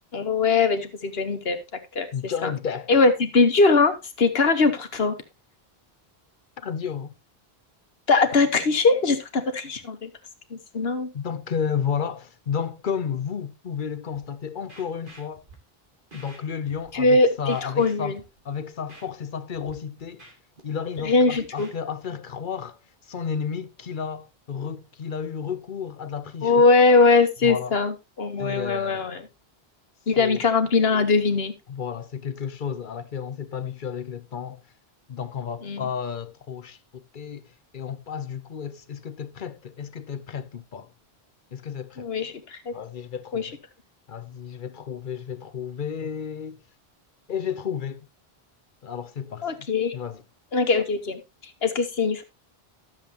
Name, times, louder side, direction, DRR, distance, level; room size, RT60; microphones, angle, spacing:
voice 1, 0.1-1.6 1.9-2.5 2.9-5.2 8.1-10.1 10.5-11.1 16.9-18.2 21.0-21.7 26.4-29.2 30.1-31.5 35.6-35.9 42.0-42.7 43.3-43.5 49.4-50.0 50.5-51.2 51.6-52.2, left 3 dB, 70° left, 1.5 m, -21 dB
voice 2, 2.1-3.1 6.6-7.1 11.1-15.4 16.1-18.2 18.4-20.3 20.6-26.7 27.4-27.8 28.4-29.3 30.2-30.4 31.7-34.6 35.1-40.9 41.5-42.1 42.7-43.6 44.1-46.6 47.3-48.1 48.8-49.5 49.9-50.2, left 7 dB, 55° left, 0.8 m, -32 dB
Scratching (performance technique), 14.1-14.2 14.7-15.5 16.1-16.4 16.7-17.1 17.5-18.4 18.9-19.0 19.5-19.7 20.0-20.6 20.9-21.7, right 2 dB, 55° right, 2.9 m, -48 dB
12.5 x 7.4 x 2.9 m
omnidirectional pair, 1.1 m